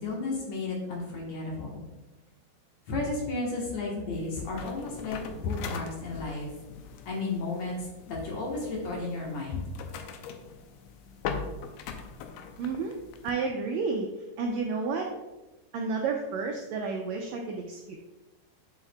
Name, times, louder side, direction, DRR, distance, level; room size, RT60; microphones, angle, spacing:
voice 1, 0.0-1.8 2.9-6.5 7.0-9.6, left 3 dB, 60° left, -3 dB, 2.3 m, -33 dB
sound 1, 4.1-13.3, left 6 dB, 85° left, 2.2 m, -41 dB
voice 2, 12.6-13.0 13.2-14.1 14.4-15.1 15.7-18.0, right 4 dB, 85° right, 2 dB, 1.6 m, -31 dB
7.3 x 7.1 x 2.3 m, 1.1 s
omnidirectional pair, 3.8 m